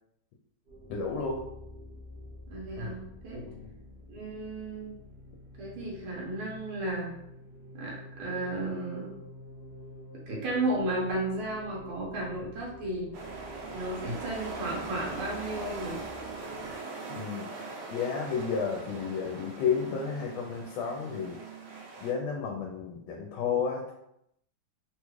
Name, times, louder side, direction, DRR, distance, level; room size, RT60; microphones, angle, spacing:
sound 1, 0.7-16.8, left 1 dB, 45° right, 0.8 m, -48 dB
voice 1, 0.9-1.4 3.4-3.7 17.1-17.5 17.9-21.4 22.0-23.9, left 6 dB, 80° left, 1 dB, 1.3 m, -32 dB
voice 2, 2.5-3.5 4.1-4.9 5.6-7.2 7.7-9.1 10.3-13.1 13.7-16.0, right 1 dB, 90° right, -3 dB, 1.7 m, -34 dB
sound 2, 13.1-22.1, right 3 dB, 70° right, 1.2 m, -41 dB
3.7 x 2.3 x 3.0 m, 0.78 s
omnidirectional pair, 2.2 m